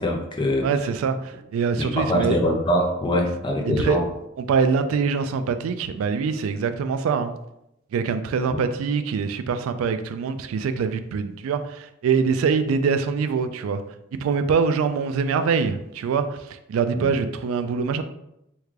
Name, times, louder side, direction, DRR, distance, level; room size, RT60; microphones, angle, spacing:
voice 1, 0.0-0.7 1.8-4.1 8.5-8.6 17.0-17.1, left 1 dB, 25° left, 1 dB, 0.4 m, -23 dB
voice 2, 0.6-2.4 3.7-4.0 4.4-7.3 7.9-13.8 14.1-18.0, right 5 dB, 85° right, 12 dB, 0.3 m, -24 dB
3.5 x 2.2 x 3.2 m, 0.83 s
head